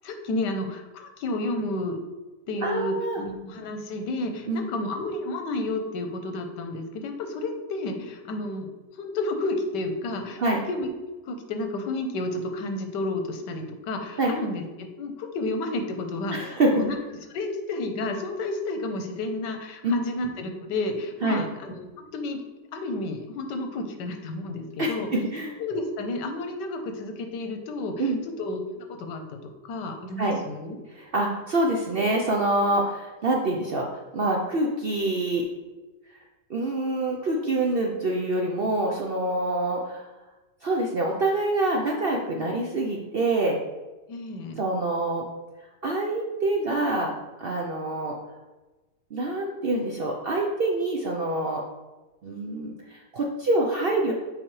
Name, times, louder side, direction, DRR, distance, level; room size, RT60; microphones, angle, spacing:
voice 1, 0.0-2.0 2.5-8.7 8.9-10.4 10.7-10.9 11.2-17.0 17.3-22.4 22.7-25.1 25.6-28.1 28.4-30.8 44.1-44.6, left 2 dB, 90° left, 5 dB, 1.4 m, -31 dB
voice 2, 2.6-3.2 4.5-4.7 10.4-10.6 14.2-14.3 16.3-16.8 19.8-19.9 21.2-21.5 24.8-25.5 28.0-28.2 30.2-30.4 30.9-35.5 36.5-40.1 40.6-43.6 44.6-45.3 45.8-47.1 47.4-48.2 49.1-51.6 52.2-54.1, right 2 dB, 75° right, 0 dB, 0.5 m, -26 dB
7.4 x 4.8 x 3.1 m, 1.1 s
omnidirectional pair, 1.8 m